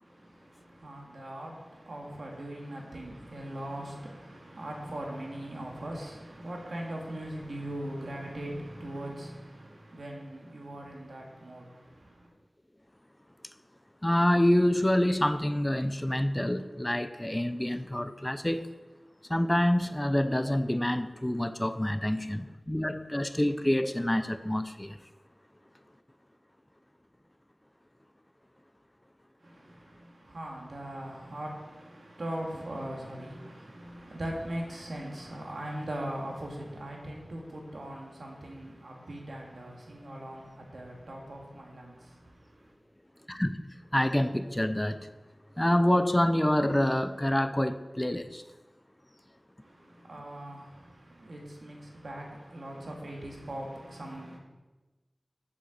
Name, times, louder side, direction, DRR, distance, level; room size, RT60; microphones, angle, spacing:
voice 1, 0.0-12.3 29.4-42.8 49.6-54.4, right 1 dB, 80° right, -1 dB, 2.2 m, -40 dB
voice 2, 14.0-18.8 19.3-25.0 43.3-43.6 43.9-45.1 45.6-48.4, left 1 dB, 15° left, 11 dB, 0.5 m, -27 dB
7.7 x 7.1 x 6.6 m, 1.2 s
wide cardioid pair, 60°, 0 cm